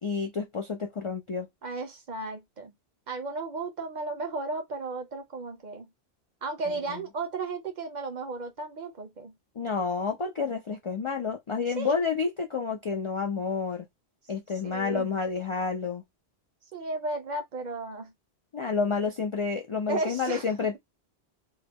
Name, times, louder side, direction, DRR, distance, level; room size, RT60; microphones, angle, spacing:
voice 1, 0.0-1.5 6.7-7.0 9.6-13.8 14.3-16.0 18.5-20.8, left 5 dB, 50° left, 0.3 m, -30 dB
voice 2, 1.6-2.7 3.1-5.9 6.4-9.3 11.8-12.0 14.6-15.1 16.7-18.1 19.9-20.5, right 3 dB, 50° right, 0.6 m, -34 dB
2.2 x 2.0 x 3.4 m
omnidirectional pair, 1.1 m